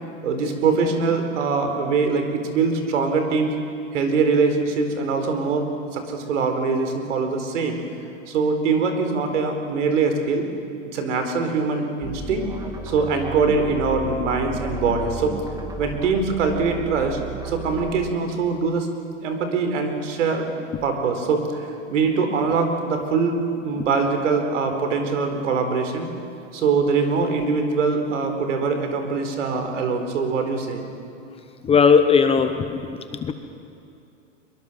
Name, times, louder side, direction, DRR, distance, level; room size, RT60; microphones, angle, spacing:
voice 1, 0.2-3.5 3.9-5.7 5.9-7.8 8.3-10.5 10.9-12.4 12.8-15.3 15.8-17.2 17.4-18.9 19.2-20.5 20.8-26.1 26.5-30.8, right 4 dB, 70° right, 6 dB, 4.3 m, -23 dB
sound 1, 12.0-18.1, right 1 dB, 10° right, 1.9 m, -34 dB
voice 2, 31.6-32.8 33.2-33.3, left 6 dB, 15° left, 8 dB, 1.0 m, -17 dB
23.5 x 22.5 x 7.5 m, 2.6 s
hypercardioid pair, 135°, 38 cm